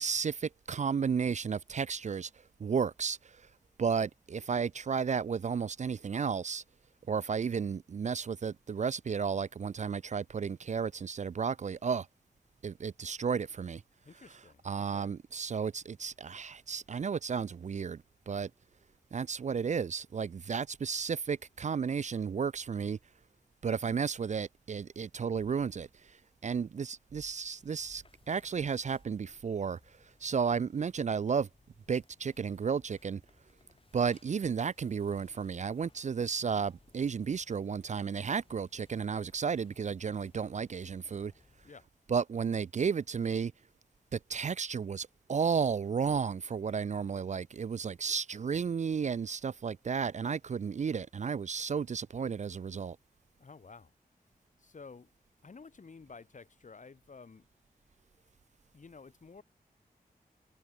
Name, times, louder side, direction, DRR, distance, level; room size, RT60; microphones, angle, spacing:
voice 1, 0.0-3.5 3.8-6.6 7.1-12.1 12.6-13.8 14.6-18.5 19.1-23.0 23.6-31.5 31.9-33.2 33.9-41.3 42.1-43.5 44.1-53.0, right 6 dB, 50° right, 0.4 m, -33 dB
voice 2, 14.0-15.1 41.6-41.9 53.4-53.9 54.6-55.1 55.4-57.5 58.7-59.4, left 4 dB, 50° left, 3.1 m, -52 dB
sound 1, 27.6-41.7, left 3 dB, 35° left, 6.0 m, -65 dB
wide cardioid pair, 110°, 16 cm